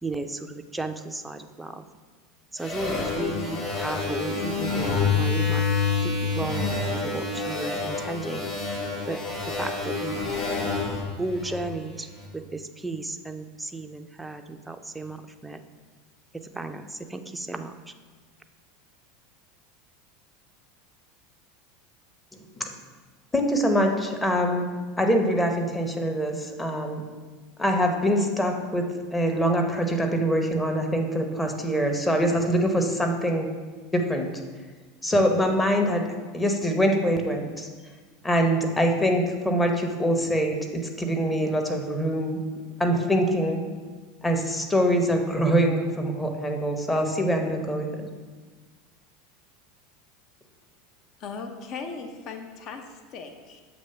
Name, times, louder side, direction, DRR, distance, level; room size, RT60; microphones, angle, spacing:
voice 1, 0.0-1.9 2.5-5.6 6.0-8.5 9.1-10.2 11.2-15.6 16.3-17.9, right 2 dB, 10° right, 7 dB, 0.5 m, -34 dB
sound 1, 2.6-12.1, left 4 dB, 35° left, 1.9 m, -28 dB
voice 2, 23.3-24.7 25.0-27.0 27.6-28.8 29.1-33.5 33.9-34.3 35.0-36.0 36.3-37.7 38.2-42.4 42.8-43.7 44.2-47.9, equal, 10° left, 3 dB, 0.9 m, -24 dB
voice 3, 51.2-53.6, left 4 dB, 50° left, 5 dB, 0.7 m, -38 dB
7.2 x 3.2 x 5.5 m, 1.4 s
hypercardioid pair, 85°, 0 cm